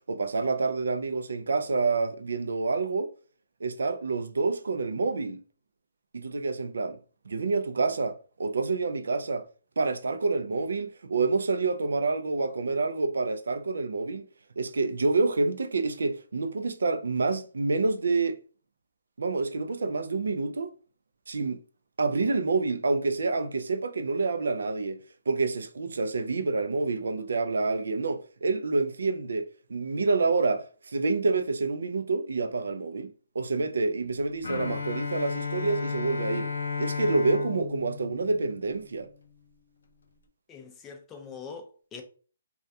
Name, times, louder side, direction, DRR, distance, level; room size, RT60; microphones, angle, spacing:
voice 1, 0.1-3.1 3.6-5.4 6.1-7.0 7.3-9.5 9.8-14.3 14.6-18.4 19.2-20.7 21.3-21.6 22.0-36.5 36.8-39.1, right 3 dB, 90° right, 0.3 m, -28 dB
Bowed string instrument, 34.4-39.3, left 5 dB, 85° left, 0.4 m, -34 dB
voice 2, 40.5-42.0, left 5 dB, 10° left, 0.4 m, -43 dB
2.3 x 2.1 x 2.6 m
hypercardioid pair, 165°, 0 cm